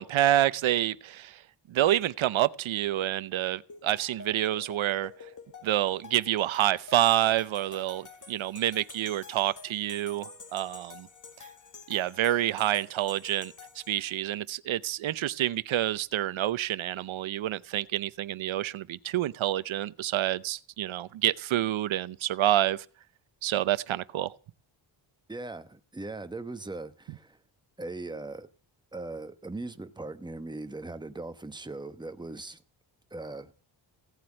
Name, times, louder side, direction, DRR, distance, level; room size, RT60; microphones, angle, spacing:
voice 1, 0.0-1.4 1.7-5.1 5.6-11.1 11.9-13.5 13.9-22.8 23.4-24.3, right 13 dB, 90° right, 0.8 m, -28 dB
sound 1, 3.7-14.3, left 5 dB, 40° left, 2.2 m, -49 dB
voice 2, 25.3-27.4 27.8-28.5 28.9-32.6 33.1-33.5, right 2 dB, 10° right, 1.0 m, -39 dB
16.5 x 7.8 x 9.9 m
wide cardioid pair, 130°, 46 cm